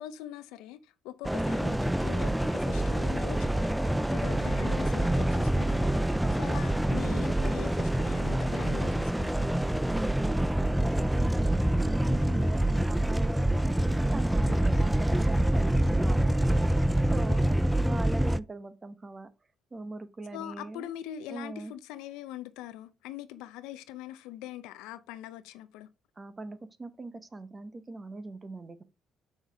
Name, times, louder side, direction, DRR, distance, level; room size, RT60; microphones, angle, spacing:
voice 1, 0.0-9.5 17.3-17.7 20.3-25.9, left 12 dB, 90° left, 0.6 m, -43 dB
sound 1, 1.2-18.4, right 1 dB, 5° right, 0.3 m, -26 dB
voice 2, 6.2-6.5 9.9-17.4 17.8-19.3 19.7-20.9 21.3-21.7 26.2-28.8, right 2 dB, 25° right, 0.9 m, -41 dB
6.6 x 5.6 x 3.4 m
cardioid pair, 90°, 0 cm